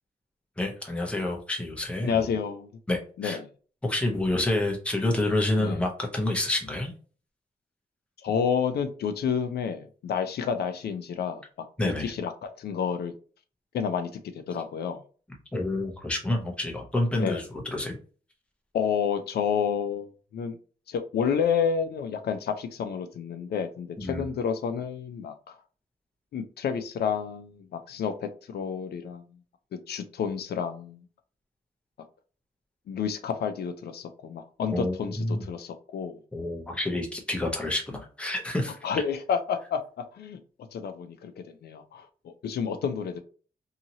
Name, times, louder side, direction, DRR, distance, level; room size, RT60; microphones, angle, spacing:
voice 1, 0.6-2.3 2.9-3.4 3.8-6.9 11.8-12.1 15.5-18.0 24.0-24.3 34.7-35.5 36.3-38.9, left 1 dB, 5° left, 1 dB, 0.6 m, -28 dB
voice 2, 2.0-2.7 3.2-3.4 5.6-5.8 8.2-13.1 13.7-14.1 14.5-15.0 17.2-17.4 18.7-20.6 20.9-25.5 26.3-29.2 29.9-31.0 32.9-36.2 38.8-39.8 40.1-40.4 40.7-41.3 41.6-43.2, left 7 dB, 85° left, 8 dB, 0.4 m, -30 dB
2.8 x 2.8 x 2.6 m, 0.39 s
wide cardioid pair, 170°, 16 cm